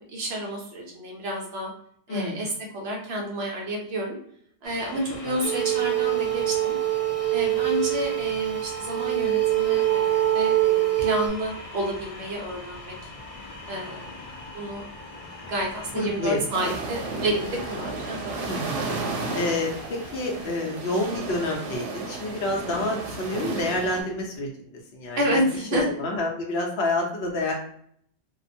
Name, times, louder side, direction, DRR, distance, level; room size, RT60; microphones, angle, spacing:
voice 1, 0.1-1.7 2.1-4.2 4.6-6.8 7.3-13.0 13.7-14.2 14.5-14.8 15.4-18.4 25.1-25.9, equal, 65° right, -1 dB, 0.9 m, -30 dB
voice 2, 2.1-2.4 5.2-5.5 15.9-16.7 18.5-18.9 19.3-24.5 24.9-25.4 25.7-27.5, left 2 dB, 65° left, 1 dB, 0.8 m, -28 dB
sound 1, 4.6-20.5, left 2 dB, 50° left, 0.4 m, -42 dB
sound 2, 5.4-11.3, right 15 dB, 25° right, 0.5 m, -24 dB
sound 3, 16.5-24.0, right 3 dB, 90° right, 0.9 m, -33 dB
2.8 x 2.0 x 2.5 m, 0.65 s
omnidirectional pair, 1.2 m